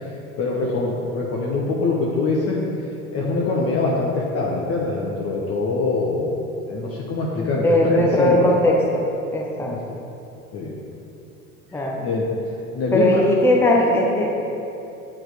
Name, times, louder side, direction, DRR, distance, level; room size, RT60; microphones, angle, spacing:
voice 1, 0.4-2.6 3.1-6.4 6.7-8.5 9.7-9.8 10.5-10.7 12.0-12.3 12.7-13.2, left 3 dB, 35° left, -3 dB, 1.0 m, -23 dB
voice 2, 7.6-9.0 9.3-9.8 11.7-12.0 12.9-14.3, left 1 dB, 5° left, -2 dB, 0.8 m, -19 dB
8.6 x 4.5 x 5.0 m, 2.9 s
figure-of-eight pair, 75°, 42 cm